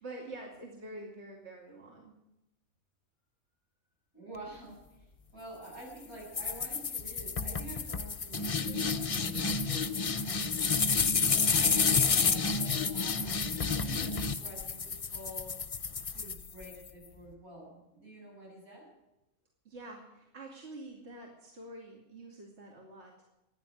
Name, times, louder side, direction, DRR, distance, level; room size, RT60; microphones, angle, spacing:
voice 1, 0.0-2.1 19.6-23.2, right 2 dB, 50° right, -1 dB, 2.9 m, -47 dB
voice 2, 4.1-10.3 10.6-15.6 16.1-18.9, right 1 dB, 85° right, -4 dB, 8.7 m, -49 dB
sound 1, 6.3-16.9, left 5 dB, 35° left, 0.6 m, -30 dB
14.5 x 10.0 x 9.8 m, 0.92 s
omnidirectional pair, 1.5 m